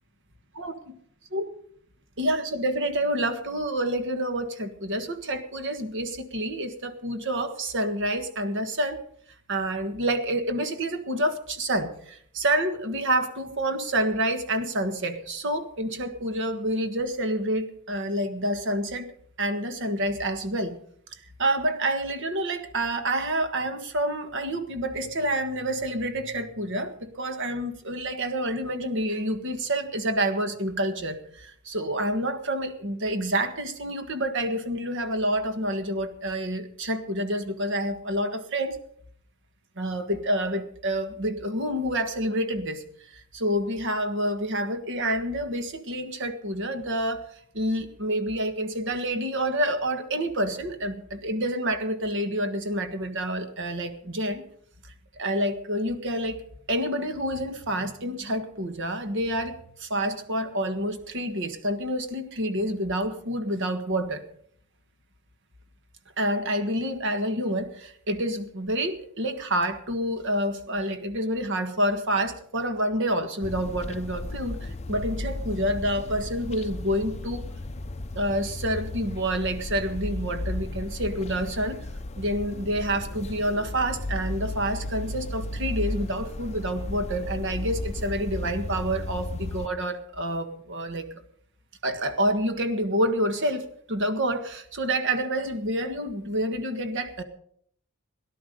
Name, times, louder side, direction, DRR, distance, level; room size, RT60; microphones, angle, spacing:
voice 1, 2.2-9.0 9.5-19.1 19.4-20.8 21.1-38.8 39.7-47.3 47.5-54.4 54.8-56.4 56.7-64.2 66.2-77.4 78.1-81.8 82.1-91.1 91.8-97.2, right 1 dB, 60° right, 8 dB, 1.7 m, -28 dB
sound 1, 73.4-89.7, left 2 dB, 30° left, 0.7 m, -34 dB
18.0 x 11.0 x 5.3 m, 0.63 s
head